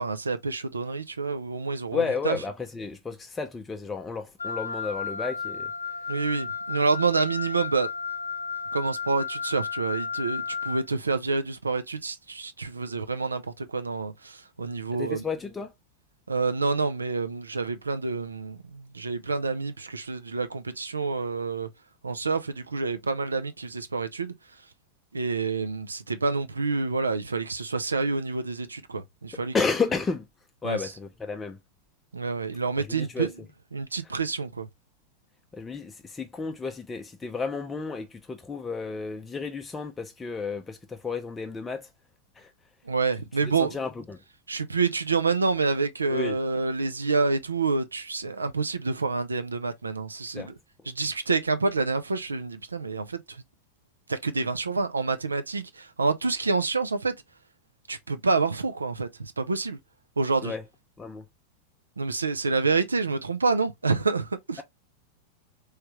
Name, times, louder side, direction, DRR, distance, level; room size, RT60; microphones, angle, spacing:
voice 1, 0.0-2.4 6.1-7.9 8.7-15.2 16.3-21.7 22.0-24.3 25.1-29.5 30.6-30.8 32.1-33.3 33.7-34.7 42.9-43.8 44.5-50.5 50.9-53.4 54.1-57.1 57.9-59.8 60.2-60.5 62.0-64.6, right 4 dB, 75° right, 0.5 m, -28 dB
voice 2, 1.9-5.7 14.9-15.7 29.5-30.3 30.6-31.6 32.8-33.3 34.0-34.1 35.5-41.9 42.3-42.5 43.4-44.2 46.1-46.4 50.3-50.5 60.4-60.6 61.0-61.3, left 4 dB, 15° left, 0.5 m, -32 dB
Wind instrument woodwind instrument, 4.4-10.8, left 5 dB, 75° left, 0.3 m, -33 dB
3.4 x 3.1 x 2.9 m
figure-of-eight pair, 90°, 0 cm